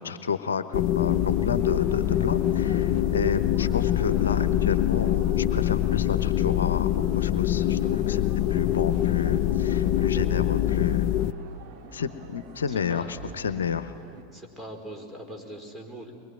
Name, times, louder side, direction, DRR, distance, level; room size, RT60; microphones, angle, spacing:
voice 1, 0.0-8.2 8.5-11.1 11.9-13.9, left 7 dB, 75° left, 12 dB, 0.9 m, -30 dB
sound 1, 0.7-11.3, left 12 dB, 45° left, 0.7 m, -24 dB
sound 2, 1.0-14.2, right 4 dB, 45° right, 2.8 m, -46 dB
voice 2, 12.7-13.2 13.5-13.6 14.3-16.1, right 1 dB, 15° right, 3 dB, 4.5 m, -41 dB
23.0 x 22.0 x 9.9 m, 2.4 s
figure-of-eight pair, 85°, 0 cm